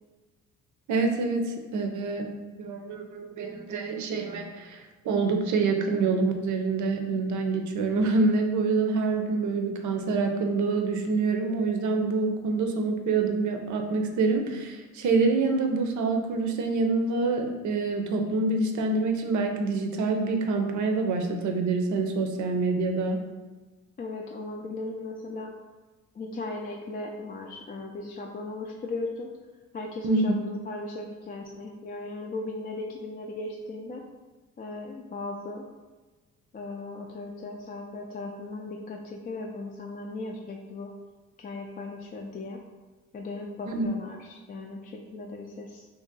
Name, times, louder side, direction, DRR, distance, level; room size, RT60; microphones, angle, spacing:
voice 1, 0.9-2.3 2.6-23.2 30.0-30.4 43.7-43.9, right 3 dB, 75° right, 5 dB, 0.6 m, -26 dB
voice 2, 24.0-25.5 26.1-29.3 29.7-34.0 34.6-35.6 36.5-40.9 41.4-42.6 43.1-45.9, left 2 dB, 30° left, 0 dB, 0.4 m, -37 dB
2.8 x 2.6 x 3.9 m, 1.2 s
cardioid pair, 90°, 30 cm